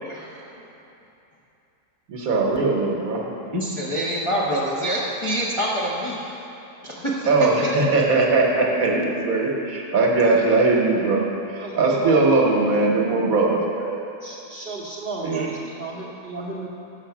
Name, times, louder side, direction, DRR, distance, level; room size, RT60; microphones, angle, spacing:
voice 1, 0.0-0.6 3.5-6.4 6.8-7.7 15.3-15.5, equal, 25° left, -6 dB, 0.7 m, -26 dB
voice 2, 2.1-3.3 7.3-14.0 15.2-15.5, right 3 dB, 65° right, -1 dB, 1.3 m, -20 dB
voice 3, 11.6-12.2 14.2-16.7, right 3 dB, 45° right, -5 dB, 0.9 m, -33 dB
7.1 x 6.2 x 5.9 m, 2.8 s
omnidirectional pair, 1.7 m